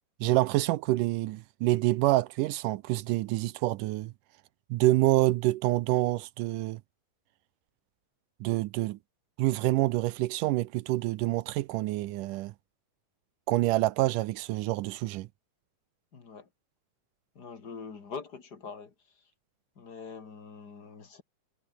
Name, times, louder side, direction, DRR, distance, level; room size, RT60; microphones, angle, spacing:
voice 1, 0.2-4.1 4.7-6.8 8.4-9.0 9.4-12.5 13.5-15.3, right 18 dB, 80° right, 2.2 m, -27 dB
voice 2, 16.1-16.5 17.4-18.9 19.8-21.2, left 5 dB, 35° left, 2.4 m, -43 dB
omnidirectional pair, 3.8 m